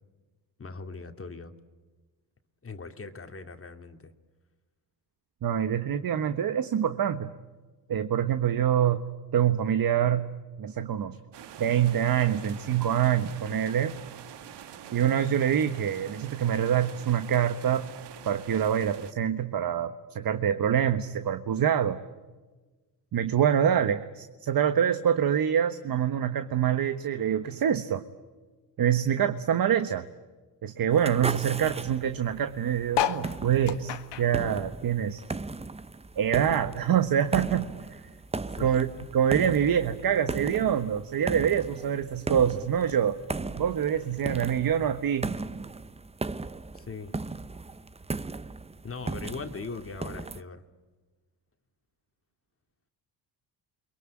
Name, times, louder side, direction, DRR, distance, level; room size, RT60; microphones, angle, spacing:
voice 1, 0.6-1.5 2.6-4.1 23.8-23.9 38.5-38.8 46.7-47.1 48.8-50.6, left 4 dB, 30° left, 6 dB, 2.5 m, -40 dB
voice 2, 5.4-7.3 7.9-9.0 9.3-10.3 10.6-11.2 11.6-14.0 14.9-17.9 18.2-22.0 23.1-28.0 28.8-30.0 30.6-35.2 36.2-37.7 38.6-38.9 39.1-43.2 43.5-45.3, right 9 dB, 55° right, 10 dB, 1.4 m, -25 dB
sound 1, 11.3-19.1, right 9 dB, 75° right, 1.8 m, -45 dB
sound 2, 30.9-50.4, right 3 dB, 15° right, 0.8 m, -37 dB
sound 3, 32.9-35.7 36.0-37.5 38.0-38.1 38.3-38.4 38.6-39.0 39.7-39.8, left 9 dB, 80° left, 1.9 m, -33 dB
29.5 x 22.5 x 8.7 m, 1.3 s
cardioid pair, 90°, 42 cm